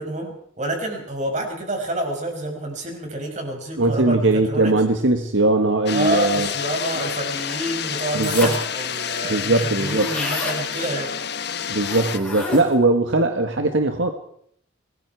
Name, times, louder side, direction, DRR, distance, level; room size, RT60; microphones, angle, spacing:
voice 1, 0.0-4.7 5.9-11.1, right 1 dB, 35° right, 2 dB, 6.3 m, -28 dB
voice 2, 3.8-6.5 8.2-8.5 9.3-10.1 11.7-14.1, right 2 dB, 75° right, 6 dB, 1.7 m, -20 dB
sound 1, 5.9-12.2, left 8 dB, 55° left, 1.1 m, -29 dB
sound 2, 8.2-8.8 9.2-9.3 9.4-10.6 11.8-12.8, left 2 dB, 10° left, 6.8 m, -29 dB
26.0 x 20.5 x 4.8 m, 0.65 s
head